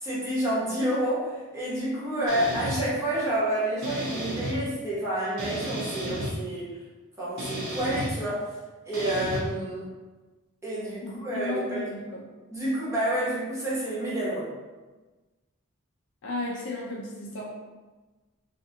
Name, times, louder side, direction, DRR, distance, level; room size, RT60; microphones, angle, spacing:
voice 1, 0.0-6.7 7.2-8.5 8.9-9.9 10.6-11.9 12.5-14.5, right 1 dB, 15° right, -8 dB, 0.8 m, -29 dB
sound 1, 2.3-2.8 3.8-4.5 5.4-6.3 7.4-8.1 8.9-9.4, right 1 dB, 55° right, 0.8 m, -33 dB
voice 2, 11.0-12.2 16.2-17.5, left 2 dB, 55° left, -4 dB, 0.4 m, -34 dB
2.6 x 2.4 x 2.6 m, 1.2 s
head